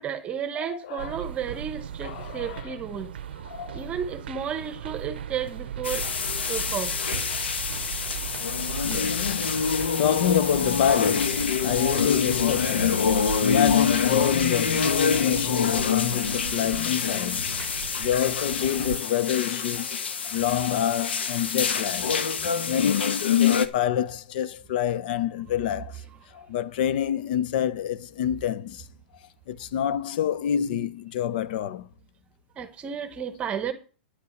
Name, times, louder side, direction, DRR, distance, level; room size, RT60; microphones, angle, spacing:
voice 1, 0.0-3.1 3.7-6.1 6.5-7.0 32.6-33.7, right 8 dB, 20° right, 1.1 m, -32 dB
voice 2, 0.5-1.2 2.0-2.8 3.4-3.8 6.0-6.1 8.8-9.6 10.0-17.5 18.0-20.0 20.3-22.1 22.7-26.0 26.3-28.9 29.5-31.9, left 9 dB, 55° left, 0.8 m, -27 dB
sound 1, 1.0-19.0, right 9 dB, 75° right, 0.6 m, -37 dB
sound 2, 5.8-23.7, left 6 dB, 85° left, 1.2 m, -26 dB
9.9 x 5.6 x 7.9 m
hypercardioid pair, 135°, 6 cm